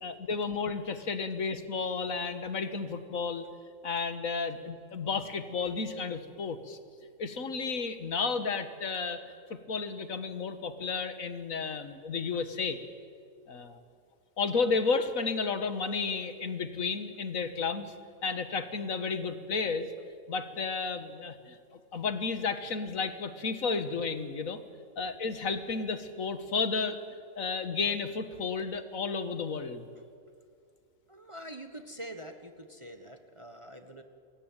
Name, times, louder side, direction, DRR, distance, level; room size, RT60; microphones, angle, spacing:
voice 1, 0.0-3.5 3.8-6.8 7.2-9.2 9.7-12.8 13.5-13.8 14.4-17.9 18.2-19.9 20.3-21.6 21.9-24.6 25.0-27.0 27.4-29.9, left 4 dB, 70° left, 10 dB, 2.0 m, -32 dB
voice 2, 31.1-34.0, right 1 dB, 20° right, 6 dB, 1.4 m, -45 dB
28.0 x 21.0 x 9.1 m, 2.3 s
omnidirectional pair, 1.5 m